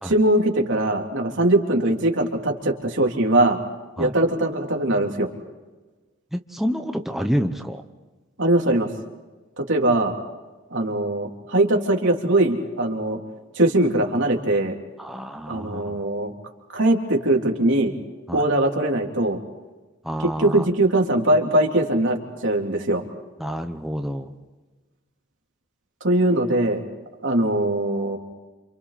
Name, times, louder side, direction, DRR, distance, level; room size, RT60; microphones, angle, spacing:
voice 1, 0.0-3.6 4.0-5.3 8.4-8.9 9.6-10.1 10.7-13.2 13.5-14.7 15.5-16.3 16.7-17.9 18.3-19.4 20.4-23.0 26.0-26.8 27.2-28.2, right 1 dB, 65° right, 1 dB, 3.5 m, -21 dB
voice 2, 6.3-7.8 15.0-16.0 18.3-18.5 20.0-20.7 23.4-24.3, equal, ahead, 4 dB, 1.0 m, -28 dB
30.0 x 28.5 x 4.3 m, 1.2 s
head